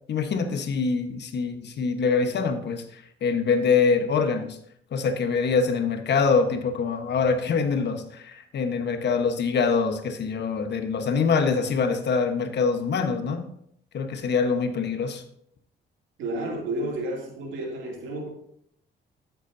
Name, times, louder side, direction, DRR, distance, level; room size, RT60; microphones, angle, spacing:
voice 1, 0.1-4.6 4.9-13.5 13.9-15.2, left 5 dB, 60° left, 7 dB, 1.2 m, -24 dB
voice 2, 16.2-18.3, right 1 dB, 85° right, -1 dB, 2.7 m, -31 dB
12.5 x 8.1 x 2.7 m, 0.70 s
cardioid pair, 90°, 20 cm